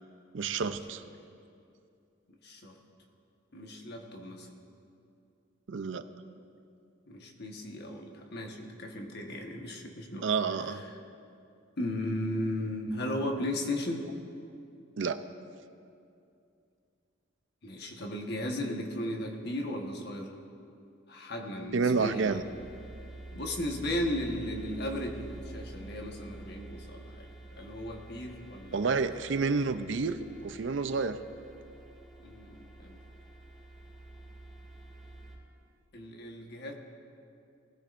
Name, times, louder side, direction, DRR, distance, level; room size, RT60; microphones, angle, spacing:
voice 1, 0.3-1.0 5.7-6.1 10.2-10.8 15.0-15.2 21.7-22.4 28.7-30.2 30.4-31.2, right 4 dB, 65° right, 11 dB, 0.5 m, -29 dB
voice 2, 2.4-2.8 3.5-4.5 7.1-10.3 10.6-11.0 11.8-14.1 17.6-20.3 21.1-22.4 23.3-27.3 27.6-29.4 32.2-33.0 35.9-36.7, left 1 dB, 55° left, 2 dB, 1.3 m, -36 dB
sound 1, 21.7-35.3, right 2 dB, ahead, 2.5 m, -48 dB
19.5 x 13.5 x 2.6 m, 2.5 s
head